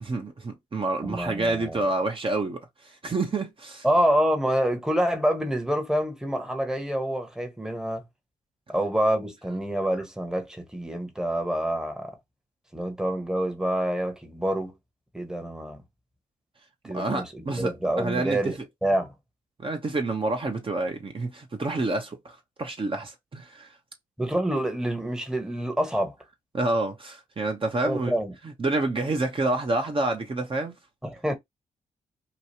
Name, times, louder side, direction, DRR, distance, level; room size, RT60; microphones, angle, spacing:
voice 1, 0.0-3.8 16.8-18.5 19.6-23.8 26.5-28.1 28.4-30.7, right 2 dB, 35° right, 0.9 m, -28 dB
voice 2, 1.0-1.8 3.8-8.0 8.7-12.2 12.7-14.7 15.1-15.8 16.8-19.1 24.2-26.1 27.8-28.3 31.0-31.3, right 1 dB, 5° right, 1.0 m, -27 dB
2.9 x 2.3 x 2.9 m
supercardioid pair, 50°, 15 cm